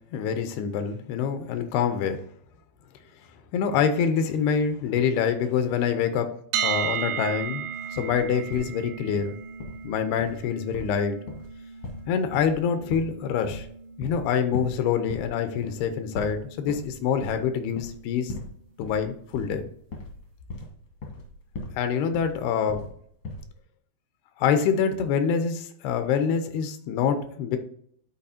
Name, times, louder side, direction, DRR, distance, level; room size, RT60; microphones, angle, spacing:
voice 1, 0.1-2.2 3.5-6.3 6.6-9.4 9.8-11.2 12.1-13.7 14.0-18.3 18.8-19.7 21.8-22.8 24.4-27.6, left 7 dB, 90° left, 9 dB, 2.7 m, -26 dB
sound 1, 6.5-18.4, right 8 dB, 80° right, 2.5 m, -36 dB
sound 2, 8.0-8.7 9.1-9.3 9.6-9.9 10.2-10.4 10.7-12.6 12.9-13.1 13.4-13.7 14.0-14.3 14.5-14.8 15.1-15.4 15.6-15.9 16.1-16.9 17.2-17.5 17.8-18.0 18.3-18.5 18.8-21.8 22.1-23.0 23.2-23.5, left 2 dB, 70° left, 1.3 m, -38 dB
11.5 x 4.2 x 2.6 m, 0.65 s
omnidirectional pair, 4.6 m